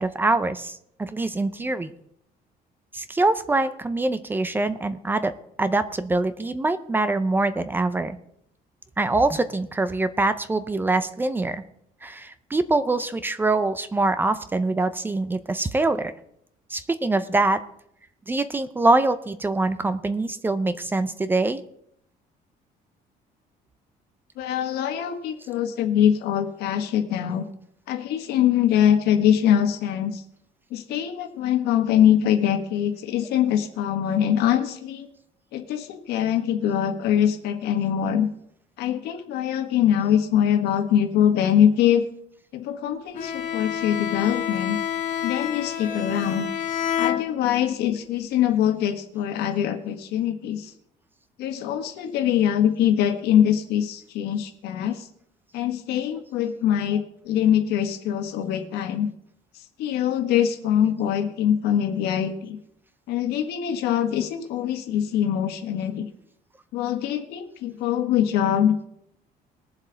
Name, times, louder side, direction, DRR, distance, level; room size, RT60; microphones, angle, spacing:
voice 1, 0.0-1.9 2.9-5.3 5.6-8.2 9.0-11.6 12.0-16.1 16.7-17.6 18.3-21.6 32.2-32.3, right 2 dB, 10° right, 12 dB, 0.5 m, -24 dB
voice 2, 24.4-27.4 27.9-30.2 30.7-35.1 35.5-38.3 38.8-42.0 42.5-44.8 45.2-46.5 47.0-50.7 51.4-55.1 55.5-59.1 59.8-62.6 63.1-66.1 66.7-68.9, left 9 dB, 90° left, 6 dB, 1.6 m, -23 dB
Bowed string instrument, 43.2-47.8, left 9 dB, 50° left, 1.2 m, -29 dB
21.0 x 7.4 x 3.9 m, 0.73 s
cardioid pair, 165°, 16 cm